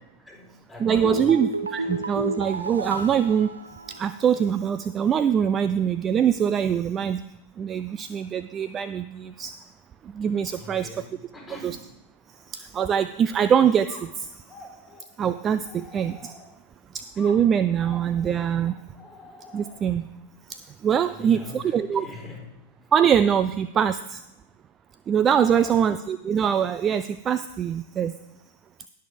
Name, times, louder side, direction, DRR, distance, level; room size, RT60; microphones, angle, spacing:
voice 1, 0.2-1.4 1.8-1.9 10.6-11.8 21.0-22.5 25.4-25.8, left 2 dB, ahead, -1 dB, 4.4 m, -42 dB
voice 2, 0.8-3.5 3.9-7.2 7.6-9.5 10.0-10.9 11.6-11.8 12.3-14.4 15.2-16.3 16.9-18.8 19.5-20.1 20.5-22.1 22.9-24.2 25.1-28.1, right 8 dB, 25° right, 13 dB, 0.4 m, -23 dB
sound 1, 0.9-4.3 4.6-4.7, right 2 dB, 75° right, 1.0 m, -31 dB
sound 2, 13.8-16.7 17.2-20.0, left 2 dB, 15° left, 3.0 m, -48 dB
19.5 x 6.6 x 3.6 m, 0.89 s
figure-of-eight pair, 90°, 0 cm